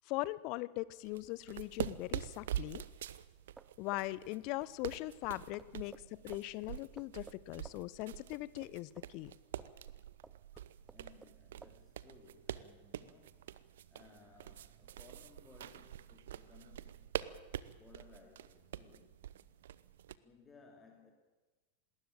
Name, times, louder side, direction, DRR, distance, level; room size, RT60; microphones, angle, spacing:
voice 1, 0.1-2.8 3.8-9.3, left 19 dB, 45° left, 20 dB, 0.7 m, -40 dB
sound 1, 1.0-20.1, right 11 dB, 60° right, 0.7 m, -45 dB
sound 2, 3.4-9.9 10.2-11.4 11.6-11.8, right 4 dB, 10° right, 0.7 m, -57 dB
voice 2, 10.8-17.3 17.8-19.2 20.2-21.1, left 4 dB, 15° left, 1 dB, 2.8 m, -62 dB
19.5 x 17.5 x 9.1 m, 1.3 s
figure-of-eight pair, 90°, 0 cm